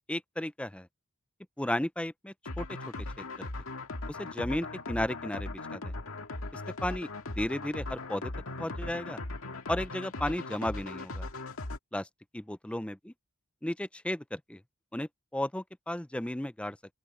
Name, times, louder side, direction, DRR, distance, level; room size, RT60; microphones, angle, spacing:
voice 1, 0.1-0.9 1.6-2.7 3.2-3.5 4.1-5.9 6.5-7.1 7.4-8.3 8.6-9.2 9.7-11.3 11.9-12.1 12.3-13.1 13.6-14.6 14.9-16.8, left 1 dB, 5° left, 0.5 m, -34 dB
sound 1, 2.5-11.8, left 2 dB, 85° left, 2.0 m, -39 dB
open air
head